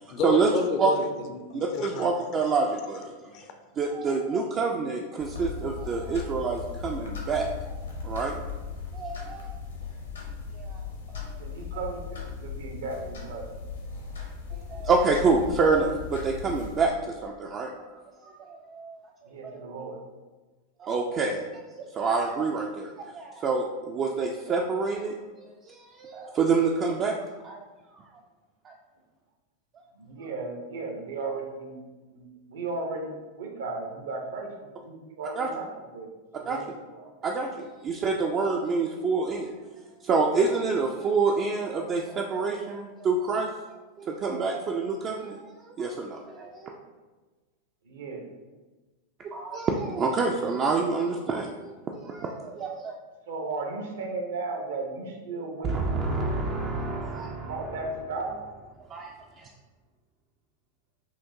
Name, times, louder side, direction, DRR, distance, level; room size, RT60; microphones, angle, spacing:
voice 1, 0.1-2.1 3.1-3.5, left 4 dB, 40° left, 6 dB, 0.4 m, -32 dB
voice 2, 1.5-3.1 3.8-8.3 8.9-9.5 10.6-10.8 11.1-11.3 14.5-19.0 19.4-19.6 20.8-27.1 27.4-27.6 27.9-28.0 28.6-28.7 35.4-35.5 36.5-36.6 37.2-39.5 39.8-43.5 44.0-46.8 49.3-52.9 55.6-57.7 58.9-59.1 59.4-59.5, right 4 dB, 30° right, 0 dB, 0.3 m, -27 dB
sound 1, 5.2-16.8, left 5 dB, 70° left, 0.9 m, -38 dB
voice 3, 11.4-13.4 19.3-20.0 29.9-31.8 32.1-35.7 35.9-36.1 36.3-36.7 36.9-37.1 47.8-48.3 53.3-56.4 57.4-58.4, right 3 dB, 60° right, 2 dB, 0.7 m, -35 dB
5.6 x 2.5 x 2.7 m, 1.3 s
figure-of-eight pair, 90°, 0 cm